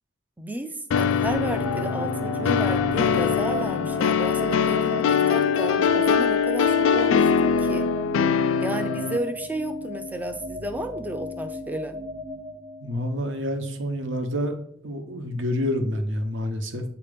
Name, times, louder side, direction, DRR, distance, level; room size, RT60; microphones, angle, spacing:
voice 1, 0.4-7.9 8.6-12.0, right 1 dB, 10° right, 8 dB, 0.4 m, -32 dB
sound 1, 0.9-9.2, left 7 dB, 75° left, 0.3 m, -22 dB
sound 2, 1.2-13.3, equal, 25° right, 1.2 m, -35 dB
voice 2, 12.8-14.6 14.8-16.8, left 1 dB, 70° right, 6 dB, 0.9 m, -28 dB
8.3 x 2.9 x 5.0 m, 0.68 s
head